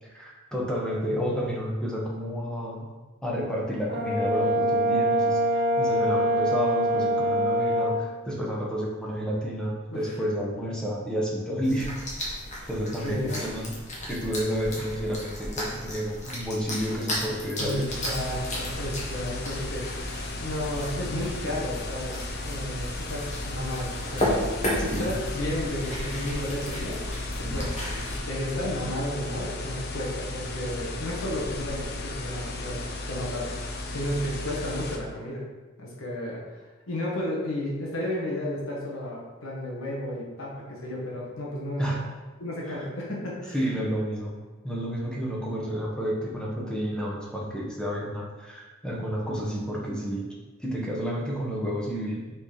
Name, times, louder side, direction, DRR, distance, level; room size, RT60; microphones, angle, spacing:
voice 1, 0.0-2.9 3.2-5.4 5.8-11.9 12.7-13.8 14.1-17.9 24.9-25.0 41.8-42.1 42.7-42.8 43.5-44.4 44.6-50.3 50.6-52.3, equal, 5° left, -4 dB, 1.2 m, -30 dB
Brass instrument, 3.9-8.0, equal, 50° right, 1.0 m, -24 dB
sound 1, 11.6-28.2, left 1 dB, 35° left, 1.7 m, -34 dB
voice 2, 13.0-13.4 17.6-19.9 20.4-24.4 24.8-27.0 27.4-27.7 28.3-32.8 33.1-35.4 35.8-36.6 36.9-41.9 42.4-43.8, left 1 dB, 80° left, -4 dB, 1.6 m, -33 dB
sound 2, 17.9-35.0, left 2 dB, 50° left, 0.8 m, -35 dB
6.3 x 4.3 x 5.0 m, 1.3 s
head